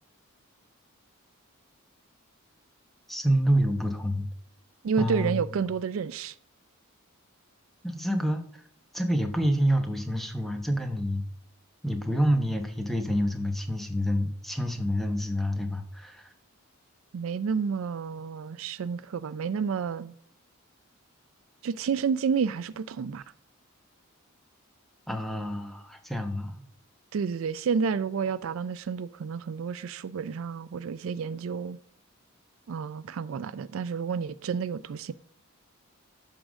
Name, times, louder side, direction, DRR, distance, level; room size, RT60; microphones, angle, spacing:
voice 1, 3.1-4.3 5.0-5.6 7.8-8.6 8.9-11.2 11.8-16.3 25.1-26.6, equal, ahead, 0.9 m, -28 dB
voice 2, 4.8-6.4 17.1-20.1 21.6-23.2 27.1-31.8 32.7-35.1, right 6 dB, 65° right, 0.4 m, -30 dB
11.0 x 3.8 x 6.2 m
head